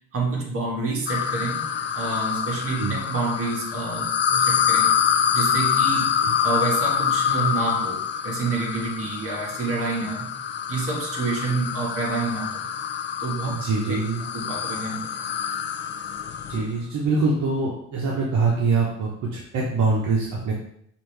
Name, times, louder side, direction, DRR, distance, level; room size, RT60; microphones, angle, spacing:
voice 1, 0.1-4.9 5.3-6.1 6.4-10.3 10.7-12.7 13.2-13.5 13.9-14.0 14.3-15.1, right 3 dB, 50° right, -2 dB, 1.4 m, -28 dB
sound 1, 1.1-16.7, left 8 dB, 40° left, 0.4 m, -26 dB
voice 2, 13.5-14.2 16.5-20.5, right 4 dB, 70° right, -3 dB, 0.9 m, -24 dB
5.1 x 2.6 x 3.3 m, 0.69 s
cardioid pair, 90°, 30 cm